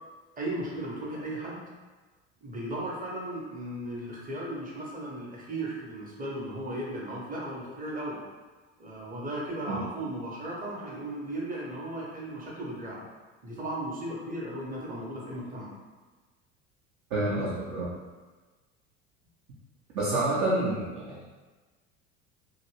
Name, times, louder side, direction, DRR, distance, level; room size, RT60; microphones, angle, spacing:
voice 1, 0.4-1.7 2.4-8.2 8.8-13.0 13.4-15.7, right 1 dB, 20° right, -4 dB, 1.0 m, -36 dB
voice 2, 17.1-17.9 19.9-21.2, right 2 dB, 50° right, -8 dB, 0.9 m, -28 dB
2.9 x 2.8 x 3.0 m, 1.3 s
figure-of-eight pair, 65°, 38 cm